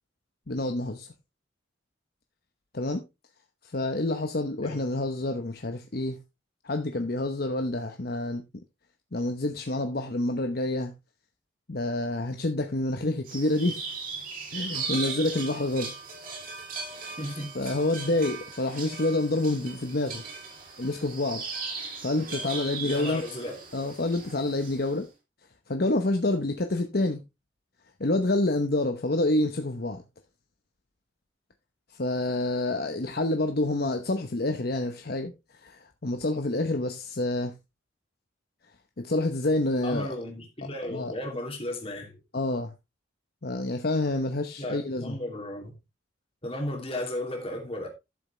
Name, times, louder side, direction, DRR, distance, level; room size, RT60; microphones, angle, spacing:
voice 1, 0.5-1.1 2.7-3.0 3.6-6.2 6.6-8.4 9.1-10.9 11.7-13.9 14.5-15.9 17.0-17.1 17.5-20.2 20.8-21.4 22.0-23.3 23.7-25.1 25.7-27.2 28.0-30.0 31.9-35.3 35.6-37.5 39.0-40.1 40.8-41.1 42.3-42.7 43.4-45.2, left 2 dB, 55° left, 1.0 m, -28 dB
sound 1, 13.3-25.0, right 4 dB, 45° right, 3.1 m, -38 dB
voice 2, 17.2-17.8 22.8-23.6 39.8-42.2 44.6-45.7 46.4-47.9, left 1 dB, 30° left, 2.8 m, -35 dB
12.0 x 7.2 x 3.3 m
head